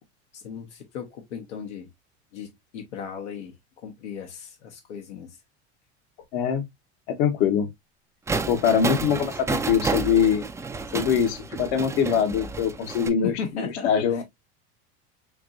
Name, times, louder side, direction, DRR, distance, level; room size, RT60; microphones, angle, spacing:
voice 1, 0.3-1.9 2.3-3.5 3.8-5.3 13.2-13.9, left 7 dB, 90° left, 1.0 m, -36 dB
voice 2, 6.3-6.7 7.2-7.7 8.5-10.4 10.9-14.2, left 7 dB, 70° left, 1.1 m, -23 dB
sound 1, 8.3-13.1, right 4 dB, 10° right, 0.3 m, -30 dB
4.5 x 2.9 x 2.5 m
supercardioid pair, 105°, 34 cm